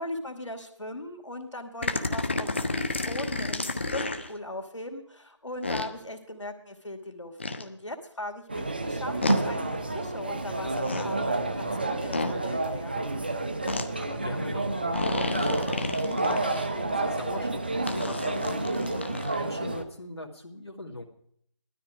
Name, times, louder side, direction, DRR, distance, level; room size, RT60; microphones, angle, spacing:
voice 1, 0.0-2.6 3.1-13.0, left 1 dB, 85° left, 4 dB, 2.5 m, -39 dB
sound 1, 1.8-4.3 5.6-5.9 7.4-7.6 9.2-9.4 10.7-11.1 12.1-12.3 13.7-13.9 14.9-16.7 17.9-19.4, left 2 dB, 25° left, 0.6 m, -31 dB
sound 2, 8.5-19.8, right 2 dB, 20° right, 0.6 m, -29 dB
voice 2, 14.0-18.9 19.3-21.0, left 2 dB, 60° left, -1 dB, 2.4 m, -41 dB
16.0 x 12.5 x 4.9 m, 0.68 s
figure-of-eight pair, 170°, 15 cm